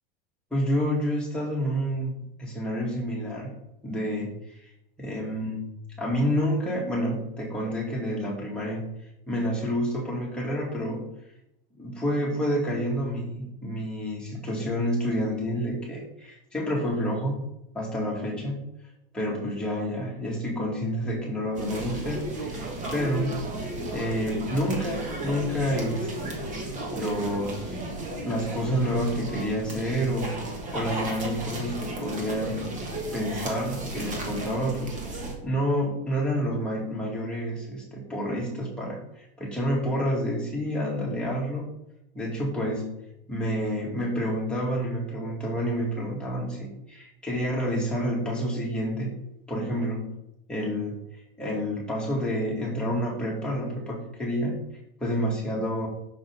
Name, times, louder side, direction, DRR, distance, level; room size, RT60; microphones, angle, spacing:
voice 1, 0.5-3.5 3.8-4.3 4.6-4.7 5.0-5.6 6.0-8.8 9.3-11.1 11.8-17.4 17.7-18.6 19.1-23.3 23.9-30.3 30.7-32.6 33.1-35.0 35.4-41.6 42.1-42.9 43.3-49.1 49.5-50.1 50.5-51.0 51.4-54.5 55.0-55.9, equal, 5° left, -5 dB, 2.2 m, -29 dB
sound 1, 21.6-35.3, right 2 dB, 25° right, 1.5 m, -34 dB
6.3 x 6.2 x 3.5 m, 0.83 s
supercardioid pair, 140°, 30 cm